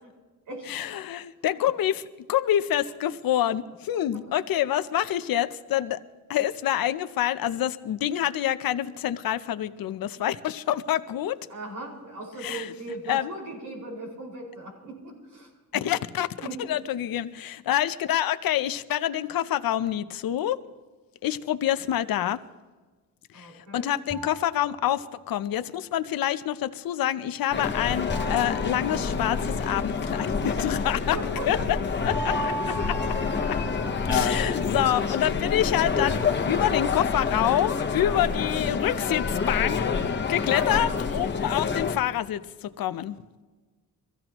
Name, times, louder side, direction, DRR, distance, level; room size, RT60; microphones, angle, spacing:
voice 1, 0.7-2.0 2.3-6.0 6.3-11.4 12.4-12.7 13.1-13.3 15.8-20.6 21.2-22.4 23.3-31.8 32.0-33.0 33.5-33.6 34.1-40.0 40.3-43.2, left 11 dB, 90° left, 12 dB, 0.7 m, -27 dB
voice 2, 11.5-15.8 16.4-16.8 23.3-23.9 31.1-31.7 40.4-40.9, right 2 dB, 70° right, -2 dB, 5.3 m, -38 dB
sound 1, 24.1-25.3 28.1-29.7 32.1-35.7 36.1-37.0, right 3 dB, ahead, 0.4 m, -38 dB
sound 2, 27.5-42.0, left 5 dB, 30° left, 1.1 m, -27 dB
24.0 x 15.5 x 3.0 m, 1.3 s
wide cardioid pair, 150°, 34 cm